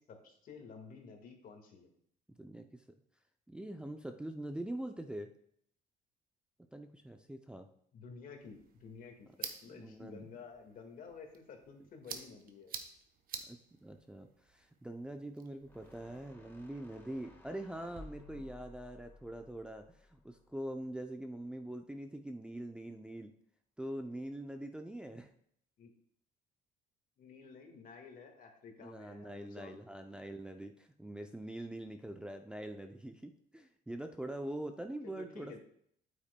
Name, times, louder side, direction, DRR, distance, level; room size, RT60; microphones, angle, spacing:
voice 1, 0.1-1.9 7.9-12.7 18.3-18.5 25.8-25.9 27.2-29.9 32.1-32.2 35.0-35.6, left 5 dB, 55° left, 3 dB, 1.7 m, -52 dB
voice 2, 2.4-2.8 3.5-5.3 6.7-7.7 9.7-10.3 13.5-23.3 23.8-25.3 28.8-35.6, right 1 dB, 5° right, 4 dB, 0.5 m, -44 dB
sound 1, 8.4-16.3, right 7 dB, 60° right, 0.9 m, -50 dB
sound 2, 15.6-20.9, left 2 dB, 10° left, 1.4 m, -56 dB
8.8 x 8.3 x 2.2 m, 0.68 s
cardioid pair, 110°, 17 cm